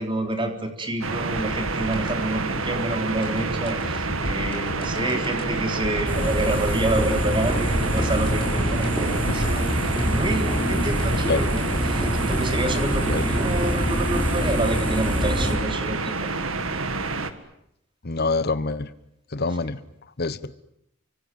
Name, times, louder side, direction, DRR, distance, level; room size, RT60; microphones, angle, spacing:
voice 1, 0.0-9.7 10.0-16.3 19.6-19.7, right 1 dB, 25° right, 4 dB, 3.7 m, -28 dB
sound 1, 1.0-17.3, right 3 dB, 65° right, 2.0 m, -28 dB
sound 2, 1.4-14.2, equal, 25° left, 6.3 m, -35 dB
sound 3, 6.1-15.6, equal, 5° left, 6.7 m, -25 dB
voice 2, 18.0-18.9 19.3-19.8 20.2-20.5, left 3 dB, 50° left, 13 dB, 1.1 m, -25 dB
30.0 x 25.0 x 7.7 m, 0.77 s
head